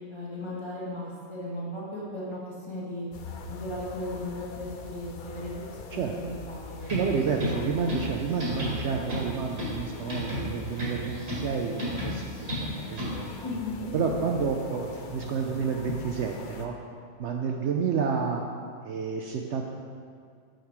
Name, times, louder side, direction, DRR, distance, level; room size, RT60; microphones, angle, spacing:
voice 1, 0.0-3.0 3.5-5.5 5.8-6.9 13.4-13.9, left 1 dB, 20° left, -6 dB, 1.5 m, -36 dB
sound 1, 3.1-16.7, left 4 dB, 60° left, 0.5 m, -42 dB
sound 2, 6.8-13.4, left 1 dB, 50° right, 2.1 m, -34 dB
voice 2, 6.9-13.3 13.9-16.7 17.2-18.4 18.8-19.6, right 6 dB, 65° right, 2 dB, 0.8 m, -30 dB
6.6 x 6.4 x 4.6 m, 2.2 s
omnidirectional pair, 1.4 m